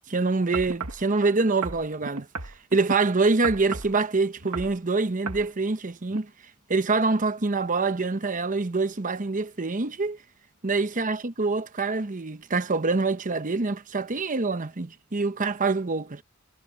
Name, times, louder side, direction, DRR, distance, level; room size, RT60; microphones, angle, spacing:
voice 1, 0.1-6.3 6.7-10.2 10.6-16.2, right 3 dB, 40° right, 0.9 m, -25 dB
sound 1, 0.5-1.0 1.6-3.0 3.4-4.0 4.4-4.8 5.3-5.5 6.1-6.2, right 4 dB, 75° right, 1.7 m, -33 dB
head